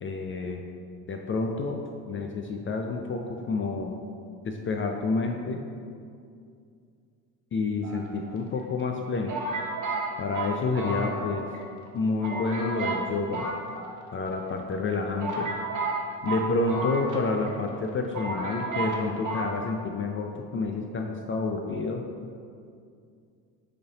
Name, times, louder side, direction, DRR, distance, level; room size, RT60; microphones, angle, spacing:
voice 1, 0.0-0.6 1.1-1.8 2.1-4.0 4.4-5.6 7.5-9.3 10.2-11.5 11.9-13.5 14.1-15.5 16.2-22.0, left 3 dB, 25° left, 2 dB, 0.5 m, -29 dB
sound 1, 7.8-8.6 9.3-11.6 11.9-12.0 12.2-13.0 13.3-14.3 14.8-14.9 15.2-17.5 17.8-17.9 18.1-19.0 19.2-19.5, right 2 dB, 40° right, 1.4 m, -32 dB
6.5 x 4.0 x 3.9 m, 2.3 s
hypercardioid pair, 65°, 47 cm